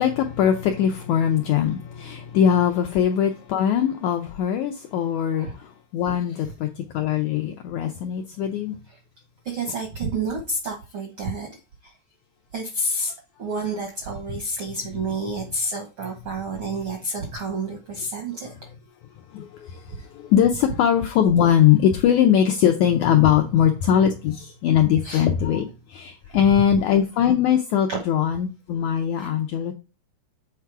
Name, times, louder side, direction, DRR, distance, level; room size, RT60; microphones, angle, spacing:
voice 1, 0.0-8.8 19.3-19.8 20.1-29.7, left 9 dB, 85° left, 1.7 m, -21 dB
voice 2, 9.4-11.5 11.8-11.9 12.5-13.1 13.4-18.6 25.0-25.3 26.2-26.4 27.9-28.0 29.2-29.3, right 2 dB, 75° right, 1.2 m, -29 dB
7.4 x 3.6 x 4.6 m
omnidirectional pair, 4.0 m